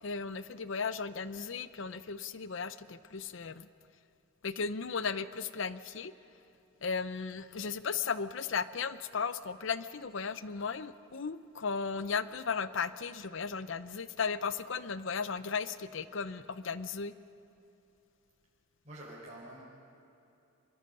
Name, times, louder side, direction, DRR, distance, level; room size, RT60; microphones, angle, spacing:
voice 1, 0.0-3.7 4.4-6.1 6.8-17.1, left 5 dB, 60° left, 14 dB, 0.7 m, -36 dB
voice 2, 18.8-19.6, right 1 dB, 35° right, -7 dB, 4.7 m, -47 dB
24.0 x 23.0 x 5.5 m, 2.8 s
head